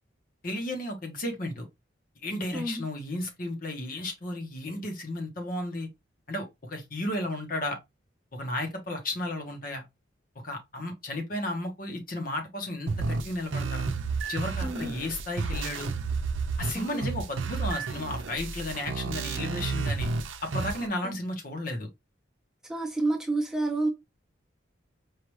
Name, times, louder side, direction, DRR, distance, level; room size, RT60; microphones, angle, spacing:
voice 1, 0.4-1.7 2.2-5.9 6.3-7.8 8.3-9.9 10.4-13.9 14.3-15.9 16.6-20.1 20.4-21.9, left 1 dB, 45° left, 1.1 m, -33 dB
voice 2, 2.5-2.8 14.6-14.9 16.7-17.0 20.8-21.2 22.7-23.9, right 2 dB, 5° right, 0.7 m, -30 dB
sound 1, 12.9-20.9, right 4 dB, 85° right, 0.6 m, -31 dB
4.8 x 2.5 x 3.1 m
head